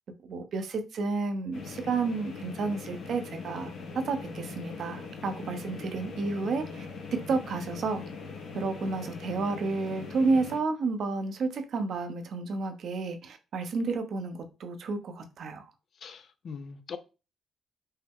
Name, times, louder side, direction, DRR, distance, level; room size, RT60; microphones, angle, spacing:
voice 1, 0.2-8.0 8.5-15.6, right 4 dB, 60° right, 0.7 m, -31 dB
sound 1, 1.5-10.6, left 4 dB, 85° left, 1.7 m, -41 dB
voice 2, 16.0-17.0, left 6 dB, 55° left, 0.5 m, -41 dB
5.4 x 2.1 x 3.6 m
cardioid pair, 90°, 0 cm